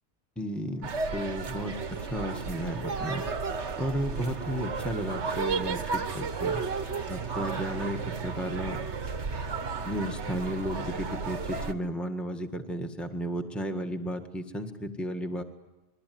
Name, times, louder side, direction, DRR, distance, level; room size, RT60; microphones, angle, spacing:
voice 1, 0.3-3.3 3.8-6.6 7.1-8.8 9.8-15.4, equal, ahead, 5 dB, 1.7 m, -33 dB
sound 1, 0.8-11.7, right 5 dB, 75° right, 1.6 m, -33 dB
28.5 x 22.0 x 9.4 m, 1.1 s
omnidirectional pair, 1.2 m